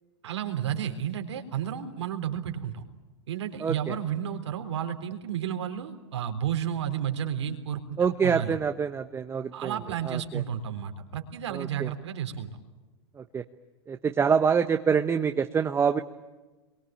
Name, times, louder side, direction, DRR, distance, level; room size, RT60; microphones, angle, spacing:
voice 1, 0.2-2.8 3.3-8.6 9.5-12.5, right 9 dB, 85° right, 5 dB, 3.8 m, -32 dB
voice 2, 3.6-3.9 8.0-9.7 10.0-10.4 11.5-11.9 13.2-13.4 13.9-16.0, right 6 dB, 15° right, 7 dB, 1.0 m, -26 dB
28.0 x 23.0 x 8.9 m, 1.2 s
hypercardioid pair, 125°, 14 cm